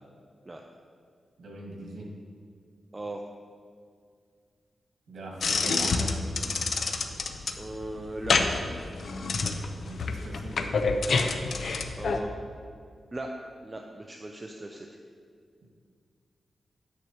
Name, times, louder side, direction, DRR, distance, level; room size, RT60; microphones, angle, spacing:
voice 1, 1.4-2.1 5.1-6.1 9.8-10.6, right 2 dB, 85° right, -2 dB, 1.9 m, -40 dB
sound 1, 5.4-12.2, left 4 dB, 60° left, 0.5 m, -28 dB
voice 2, 7.6-8.6 12.0-12.3 13.1-13.3 13.6-14.9, right 1 dB, 20° right, 2 dB, 0.4 m, -38 dB
9.4 x 7.7 x 3.0 m, 2.2 s
wide cardioid pair, 140°, 0 cm